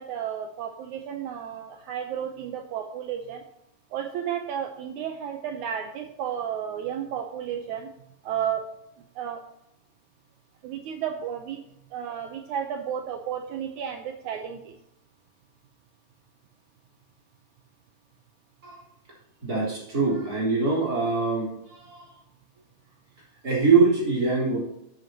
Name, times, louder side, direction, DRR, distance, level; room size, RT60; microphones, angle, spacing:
voice 1, 0.0-3.4 3.9-7.9 8.2-8.6 9.1-9.4 10.6-11.6 11.9-14.7, right 9 dB, 85° right, 5 dB, 1.7 m, -32 dB
voice 2, 19.4-22.1 23.4-24.6, right 4 dB, 25° right, -5 dB, 3.7 m, -23 dB
12.5 x 7.8 x 2.9 m, 0.82 s
omnidirectional pair, 4.4 m